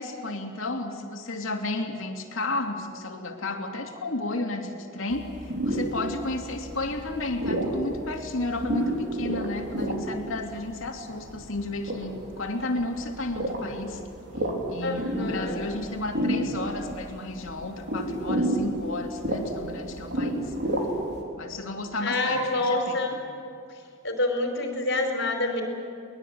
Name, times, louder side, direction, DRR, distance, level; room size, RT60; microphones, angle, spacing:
voice 1, 0.0-14.0 14.7-20.5 21.4-23.2, left 2 dB, 70° left, 2 dB, 2.7 m, -32 dB
sound 1, 5.1-21.2, right 1 dB, 55° right, 3.9 m, -31 dB
voice 2, 14.8-15.6 22.0-23.2 24.0-25.6, left 2 dB, 55° left, 3 dB, 5.0 m, -27 dB
23.0 x 20.5 x 8.7 m, 2.6 s
head